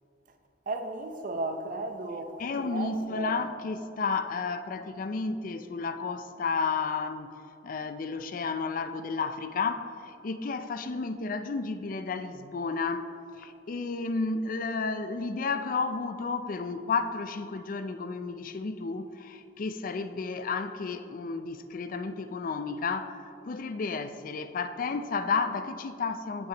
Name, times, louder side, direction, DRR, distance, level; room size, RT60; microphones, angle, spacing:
voice 1, 0.7-3.5, right 2 dB, 50° right, 0.7 m, -35 dB
voice 2, 2.4-7.3 7.6-13.1 13.4-26.5, left 4 dB, 50° left, 0.4 m, -32 dB
15.5 x 6.0 x 2.9 m
head